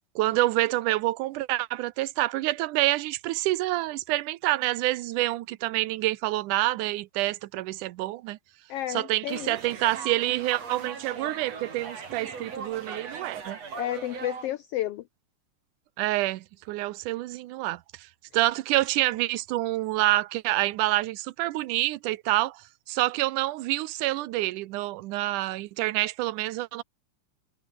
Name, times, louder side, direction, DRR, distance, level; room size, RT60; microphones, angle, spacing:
voice 1, 0.2-8.4 8.9-13.6 16.0-17.8 18.3-22.6 22.9-26.8, right 17 dB, 90° right, 2.3 m, -27 dB
voice 2, 8.7-9.6 13.7-15.1, left 13 dB, 75° left, 1.4 m, -31 dB
sound 1, 9.3-14.5, right 5 dB, 55° right, 4.8 m, -39 dB
omnidirectional pair, 3.5 m